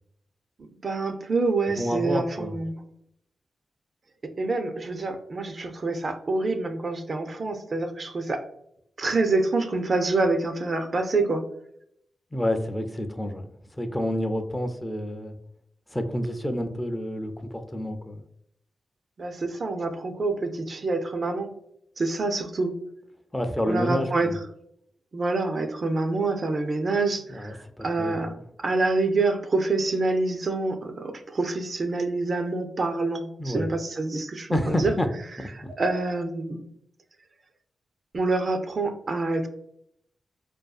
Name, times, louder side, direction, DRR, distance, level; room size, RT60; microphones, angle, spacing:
voice 1, 0.8-2.8 4.4-8.4 9.0-11.4 19.2-21.5 22.0-22.7 23.7-24.3 25.1-34.9 35.5-36.6 38.1-39.5, right 3 dB, 55° right, 7 dB, 0.4 m, -26 dB
voice 2, 1.7-2.6 12.3-15.3 15.9-18.2 23.3-24.4 27.3-28.4 33.4-33.7 34.5-35.1 35.6-35.7, equal, 15° left, 7 dB, 0.4 m, -29 dB
2.5 x 2.3 x 2.3 m, 0.73 s
supercardioid pair, 45°, 0 cm